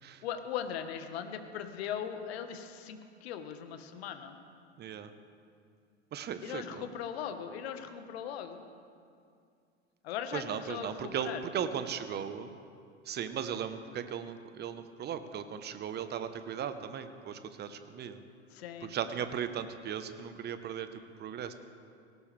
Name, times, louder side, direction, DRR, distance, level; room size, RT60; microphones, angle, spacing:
voice 1, 0.2-4.4 6.4-8.6 10.0-10.4 10.7-11.4 18.5-18.9, left 9 dB, 60° left, 8 dB, 1.5 m, -39 dB
voice 2, 4.8-5.1 6.1-6.9 10.3-12.5 13.0-18.2 18.8-20.9 21.2-21.5, right 8 dB, 30° right, 10 dB, 1.1 m, -37 dB
18.5 x 17.5 x 3.4 m, 2.3 s
hypercardioid pair, 90°, 35 cm